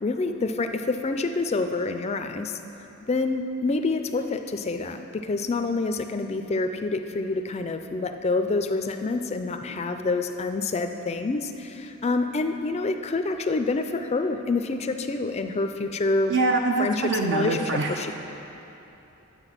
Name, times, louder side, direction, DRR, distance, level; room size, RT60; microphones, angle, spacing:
voice 1, 0.0-2.6 3.0-16.3 16.8-18.2, left 3 dB, 30° left, 7 dB, 0.4 m, -27 dB
voice 2, 16.3-18.2, right 3 dB, 55° right, 2 dB, 0.5 m, -25 dB
9.8 x 7.8 x 5.8 m, 3.0 s
head